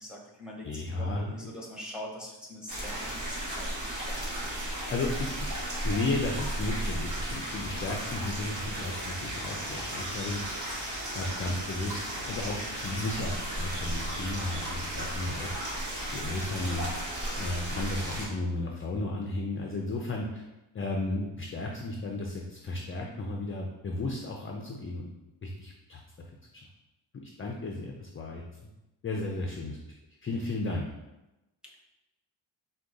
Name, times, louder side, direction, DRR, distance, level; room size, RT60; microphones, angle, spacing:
voice 1, 0.0-4.5, left 1 dB, ahead, -3 dB, 0.7 m, -43 dB
voice 2, 0.6-1.3 4.9-16.9 17.4-20.4 20.7-25.1 25.4-26.0 27.2-28.4 29.0-29.8 30.2-30.9, left 2 dB, 30° left, 0 dB, 0.4 m, -34 dB
sound 1, 2.7-18.3, right 1 dB, 40° right, 1.4 m, -35 dB
4.6 x 2.3 x 3.8 m, 0.99 s
wide cardioid pair, 130°, 47 cm